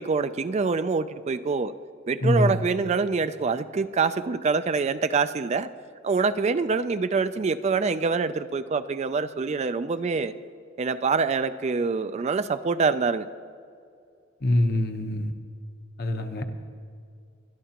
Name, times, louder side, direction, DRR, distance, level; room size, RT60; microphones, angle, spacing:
voice 1, 0.0-1.7 2.1-5.7 6.0-10.3 10.8-13.3, right 4 dB, 30° right, 11 dB, 0.3 m, -25 dB
voice 2, 2.2-2.6 14.4-15.3 16.0-16.4, left 1 dB, 50° left, 5 dB, 1.0 m, -24 dB
21.5 x 12.0 x 2.9 m, 2.3 s
head